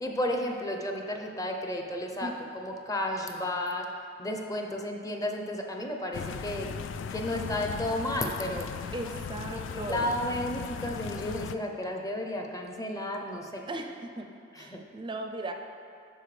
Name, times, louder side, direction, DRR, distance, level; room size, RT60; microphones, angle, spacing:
voice 1, 0.0-2.3 2.5-3.9 4.2-6.7 7.1-8.7 9.5-13.6 14.7-14.8, left 1 dB, 20° left, 2 dB, 0.6 m, -32 dB
sound 1, 6.1-11.6, left 6 dB, 80° left, 0.3 m, -37 dB
voice 2, 8.9-10.1 13.7-14.3 14.6-15.5, right 2 dB, 25° right, 4 dB, 0.4 m, -37 dB
12.0 x 4.7 x 3.3 m, 2.6 s
head